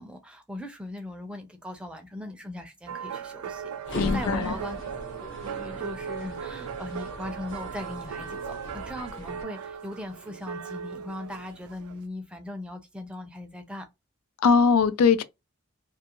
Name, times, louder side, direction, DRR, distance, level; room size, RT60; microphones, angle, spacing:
voice 1, 0.0-3.7 4.1-13.9, left 1 dB, 5° right, 0.4 m, -39 dB
sound 1, 2.9-12.0, right 7 dB, 75° right, 0.3 m, -38 dB
sound 2, 3.8-9.4, left 1 dB, 55° left, 1.1 m, -39 dB
voice 2, 4.0-4.5 14.4-15.2, left 5 dB, 75° left, 0.4 m, -21 dB
2.5 x 2.4 x 2.9 m
head